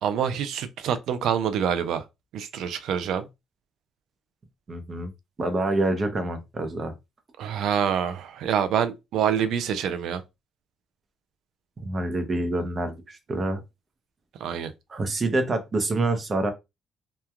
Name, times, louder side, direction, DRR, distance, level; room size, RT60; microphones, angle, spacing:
voice 1, 0.0-2.0 2.3-3.3 7.4-10.2 14.4-14.7, right 8 dB, 75° right, 0.4 m, -26 dB
voice 2, 4.7-5.1 5.4-6.9 11.8-13.6 14.9-16.5, right 2 dB, 30° right, 0.6 m, -27 dB
3.0 x 2.2 x 2.3 m
cardioid pair, 115°, 0 cm